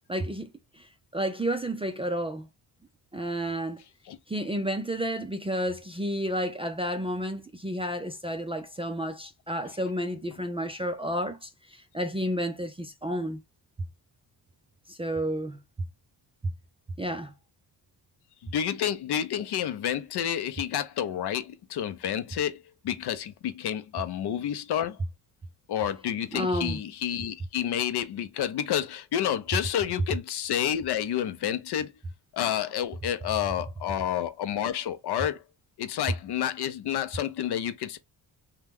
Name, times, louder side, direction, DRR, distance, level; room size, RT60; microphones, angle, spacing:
voice 1, 0.1-0.5 0.8-0.9 1.1-2.5 3.1-3.8 4.3-13.4 14.9-15.6 17.0-17.3 26.3-26.8, equal, 15° right, 0.3 m, -31 dB
voice 2, 18.4-25.0 25.7-31.9 32.3-35.4 35.8-38.0, left 10 dB, 65° left, 0.6 m, -29 dB
2.9 x 2.2 x 3.4 m
cardioid pair, 100°, 44 cm